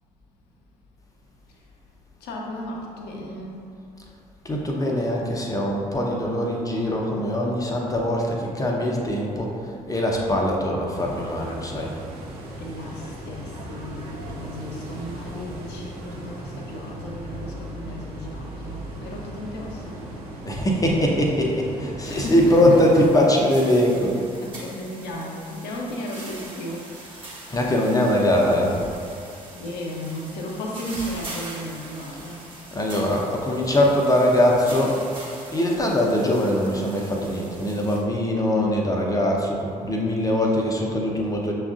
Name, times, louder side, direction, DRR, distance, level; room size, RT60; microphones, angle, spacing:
voice 1, 2.2-3.7 12.6-20.0 22.0-27.6 29.5-32.5, equal, 60° left, -1 dB, 0.7 m, -35 dB
voice 2, 4.4-11.9 20.4-24.2 27.5-28.8 32.7-35.0 35.5-41.5, left 1 dB, 20° left, -1 dB, 0.6 m, -22 dB
sound 1, 10.9-23.2, right 1 dB, 75° right, 0.5 m, -37 dB
sound 2, 22.0-38.0, right 2 dB, 25° right, 1.2 m, -42 dB
6.9 x 2.3 x 2.4 m, 2.6 s
figure-of-eight pair, 45°, 19 cm